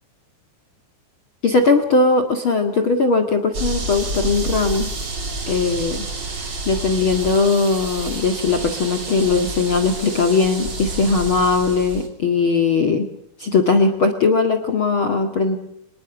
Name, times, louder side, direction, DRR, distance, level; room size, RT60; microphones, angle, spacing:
voice 1, 1.4-4.9 5.5-6.1 6.7-13.1 13.4-15.6, left 4 dB, 40° left, 5 dB, 2.3 m, -19 dB
sound 1, 3.5-12.1, right 3 dB, 30° right, 4.0 m, -29 dB
25.5 x 21.0 x 7.1 m, 0.76 s
omnidirectional pair, 4.2 m